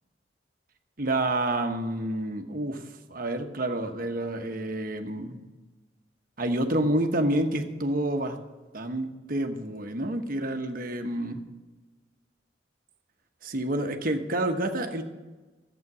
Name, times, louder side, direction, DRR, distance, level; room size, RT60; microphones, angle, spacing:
voice 1, 1.0-5.4 6.4-8.4 8.7-11.4 13.4-15.0, right 1 dB, 50° right, 5 dB, 1.1 m, -28 dB
12.5 x 8.1 x 6.1 m, 1.2 s
head